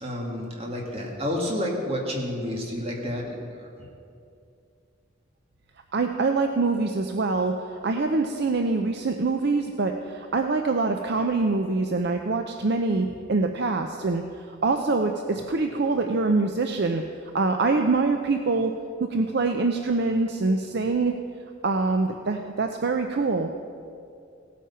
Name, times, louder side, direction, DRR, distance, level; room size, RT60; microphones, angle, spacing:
voice 1, 0.0-3.7, left 1 dB, 30° right, -1 dB, 2.1 m, -30 dB
voice 2, 5.9-14.2 14.6-17.0 17.3-18.7 19.1-21.1 21.6-23.5, right 3 dB, 55° right, 5 dB, 0.6 m, -24 dB
17.0 x 8.5 x 5.6 m, 2.5 s
head